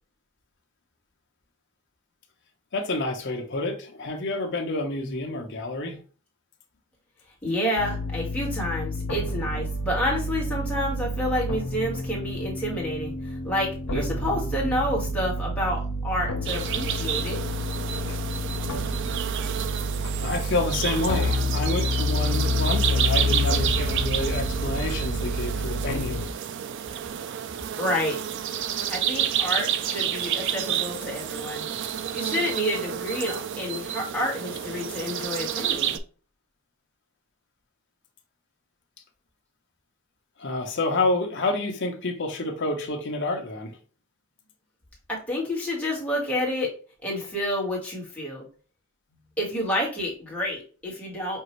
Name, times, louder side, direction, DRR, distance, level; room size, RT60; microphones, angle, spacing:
voice 1, 2.7-6.0 18.1-18.2 20.0-26.2 40.4-43.8, left 2 dB, 55° left, 0.8 m, -29 dB
voice 2, 7.4-17.4 21.4-21.5 27.8-28.2 28.9-31.7 32.1-36.0 45.1-46.7 47.0-48.4 49.4-51.4, left 1 dB, 5° left, 1.5 m, -29 dB
sound 1, 7.8-26.3, left 1 dB, 90° left, 0.9 m, -29 dB
sound 2, 16.5-36.0, right 10 dB, 55° right, 0.3 m, -30 dB
5.4 x 2.5 x 3.1 m
head